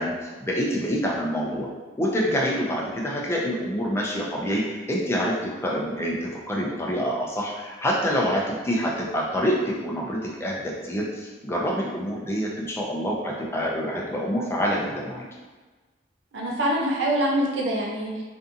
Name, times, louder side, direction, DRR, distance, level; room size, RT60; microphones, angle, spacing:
voice 1, 0.0-1.7 2.0-15.2, equal, 15° left, -3 dB, 0.4 m, -26 dB
voice 2, 16.3-18.2, right 1 dB, 70° right, -1 dB, 0.4 m, -24 dB
2.6 x 2.5 x 2.4 m, 1.3 s
head